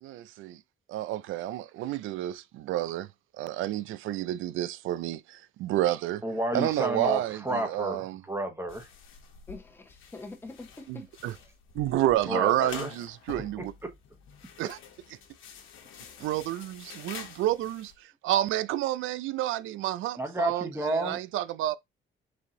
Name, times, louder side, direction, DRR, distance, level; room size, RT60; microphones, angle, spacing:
voice 1, 0.0-0.6 0.9-3.1 3.4-6.2 6.5-8.2 10.9-11.4 11.7-13.7 14.6-14.8 16.2-21.8, right 13 dB, 80° right, 0.4 m, -30 dB
voice 2, 6.2-8.9 12.3-12.9 20.2-21.2, right 1 dB, 15° right, 1.1 m, -31 dB
sound 1, 8.7-17.9, left 7 dB, 80° left, 1.1 m, -47 dB
voice 3, 9.5-11.0, left 2 dB, 10° left, 0.9 m, -44 dB
4.3 x 2.7 x 3.7 m
cardioid pair, 90°, 20 cm